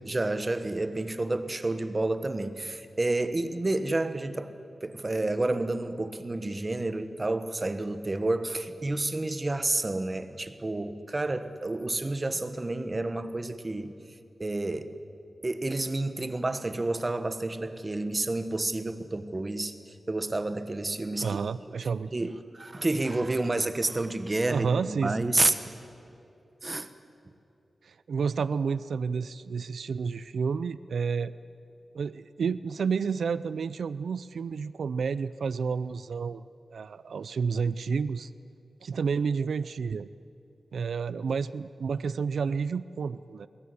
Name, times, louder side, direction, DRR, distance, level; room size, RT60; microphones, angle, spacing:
voice 1, 0.0-4.5 4.8-13.9 14.4-14.9 15.4-19.7 20.1-21.4 22.1-25.5 26.6-26.9, right 2 dB, 30° right, 11 dB, 1.3 m, -30 dB
voice 2, 21.2-22.3 24.5-25.4 27.8-31.3 31.9-36.4 36.7-38.3 38.8-40.1 40.7-43.5, right 5 dB, 90° right, 16 dB, 0.4 m, -30 dB
21.5 x 18.5 x 9.9 m, 2.7 s
wide cardioid pair, 105°, 0 cm